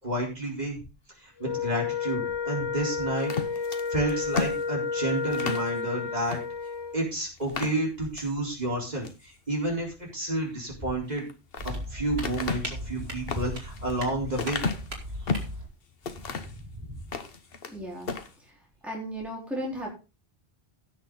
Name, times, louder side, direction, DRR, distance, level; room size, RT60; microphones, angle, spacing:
voice 1, 0.0-0.8 1.2-3.3 3.9-6.4 6.9-11.2 11.6-14.6 16.3-16.5 16.8-16.9, right 1 dB, 40° right, -2 dB, 4.4 m, -30 dB
Wind instrument woodwind instrument, 1.4-7.0, left 5 dB, 30° left, 0.7 m, -31 dB
sound 1, 3.2-5.7 6.3-6.4 6.8-6.9 7.4-8.3 8.8-9.2 11.0-11.8 12.2-15.6 16.0-16.6 17.0-17.8 18.0-18.3, left 5 dB, 65° left, 1.3 m, -33 dB
sound 2, 11.6-15.7, equal, 75° right, 3.0 m, -37 dB
voice 2, 17.7-18.1 18.8-19.9, equal, ahead, -3 dB, 3.8 m, -35 dB
16.0 x 6.5 x 3.9 m, 0.30 s
omnidirectional pair, 1.0 m